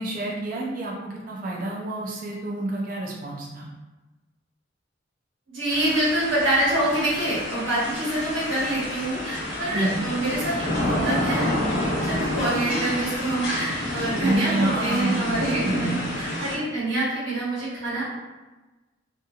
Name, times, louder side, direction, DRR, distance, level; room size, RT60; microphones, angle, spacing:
voice 1, 0.0-3.7 9.7-10.0 14.2-16.0, right 1 dB, 45° right, -3 dB, 0.5 m, -28 dB
voice 2, 5.5-10.5 10.8-11.5 11.9-18.0, right 1 dB, 85° right, -8 dB, 1.3 m, -26 dB
sound 1, 5.7-16.6, left 1 dB, 70° left, 0.9 m, -29 dB
2.7 x 2.6 x 2.3 m, 1.2 s
head